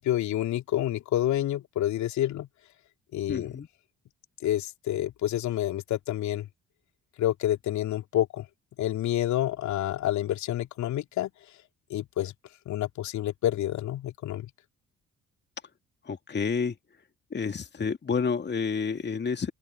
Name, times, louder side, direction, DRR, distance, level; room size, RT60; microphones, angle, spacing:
voice 1, 0.0-2.5 3.1-3.6 4.4-6.5 7.2-8.4 8.8-11.3 11.9-12.3 12.7-14.5, left 13 dB, 60° left, 2.9 m, -28 dB
voice 2, 3.3-3.7 16.0-16.8 17.3-19.5, left 5 dB, 30° left, 2.4 m, -29 dB
open air
figure-of-eight pair, 45°, 33 cm